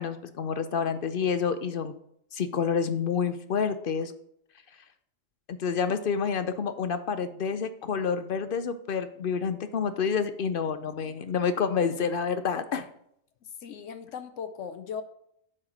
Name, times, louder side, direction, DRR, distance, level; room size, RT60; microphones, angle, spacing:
voice 1, 0.0-1.9 2.3-4.1 5.5-12.9, left 6 dB, 55° left, 11 dB, 0.6 m, -28 dB
voice 2, 13.6-15.0, left 7 dB, 75° left, 9 dB, 1.0 m, -38 dB
7.5 x 4.8 x 6.0 m, 0.72 s
omnidirectional pair, 1.3 m